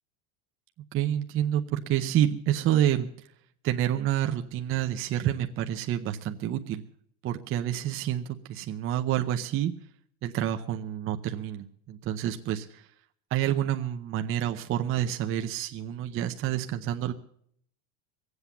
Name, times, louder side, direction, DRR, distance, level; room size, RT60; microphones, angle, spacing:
voice 1, 0.9-3.1 3.6-6.8 7.2-9.7 10.2-12.8 13.3-17.1, right 11 dB, 30° right, 5 dB, 0.7 m, -28 dB
21.5 x 8.0 x 7.0 m, 0.64 s
supercardioid pair, 145°, 44 cm